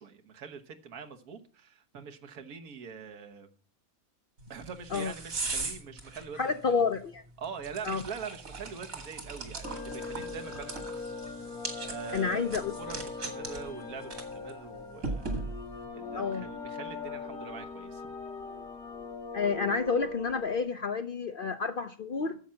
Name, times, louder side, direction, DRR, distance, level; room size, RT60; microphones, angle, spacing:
voice 1, 0.0-3.5 4.5-6.8 7.4-11.1 11.7-15.5 15.9-18.0, right 6 dB, 80° right, 6 dB, 1.7 m, -44 dB
sound 1, 4.4-15.8, right 3 dB, 65° right, 2.6 m, -40 dB
voice 2, 6.4-7.2 7.8-8.0 12.1-12.7 16.1-16.4 19.3-22.4, left 5 dB, 55° left, 9 dB, 0.6 m, -30 dB
sound 2, 9.6-20.6, left 4 dB, 85° left, 3.4 m, -41 dB
10.0 x 7.5 x 5.7 m, 0.42 s
omnidirectional pair, 1.5 m